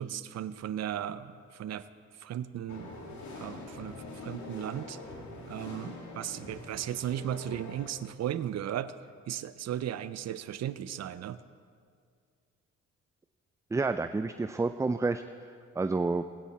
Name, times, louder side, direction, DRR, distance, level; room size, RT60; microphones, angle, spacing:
voice 1, 0.0-1.9 2.2-2.9 3.4-5.0 5.5-9.0 9.3-11.4, right 10 dB, 60° right, 14 dB, 0.6 m, -36 dB
sound 1, 2.7-7.9, left 2 dB, 70° left, 2.2 m, -44 dB
voice 2, 13.7-15.2 15.8-16.2, right 3 dB, 10° right, 10 dB, 0.3 m, -29 dB
20.5 x 9.1 x 4.3 m, 2.1 s
cardioid pair, 90°, 30 cm